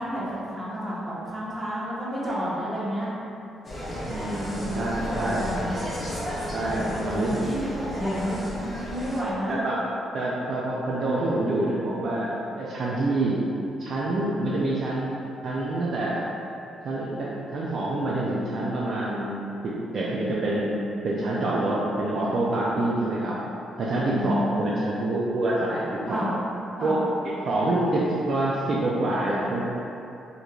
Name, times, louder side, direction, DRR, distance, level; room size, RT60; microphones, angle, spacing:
voice 1, 0.0-3.1 4.5-5.8 6.9-9.5 24.0-25.3 26.1-26.4 26.8-27.0, equal, 15° right, -9 dB, 0.9 m, -30 dB
Insect, 3.6-9.2, equal, 10° left, 0.8 m, -33 dB
voice 2, 4.0-5.5 6.5-7.4 9.5-9.8 10.1-13.4 13.8-15.1 15.4-16.3 16.8-20.8 21.0-23.4 23.8-26.3 26.8-29.6, right 2 dB, 50° right, -6 dB, 0.4 m, -27 dB
4.5 x 2.6 x 2.4 m, 2.8 s
cardioid pair, 140°, 0 cm